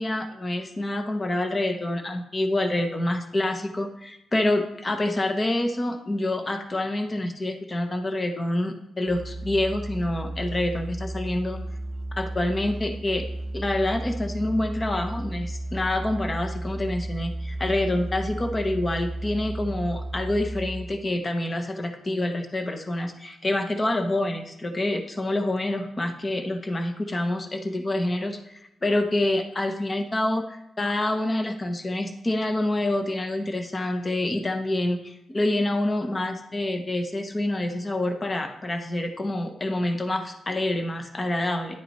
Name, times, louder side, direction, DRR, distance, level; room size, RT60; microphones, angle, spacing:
voice 1, 0.0-11.6 12.1-13.3 13.5-41.8, left 1 dB, 20° left, 5 dB, 0.7 m, -27 dB
Musical instrument, 9.1-21.1, right 1 dB, 30° right, 0.6 m, -34 dB
10.5 x 8.1 x 3.0 m, 0.82 s
wide cardioid pair, 150°, 0 cm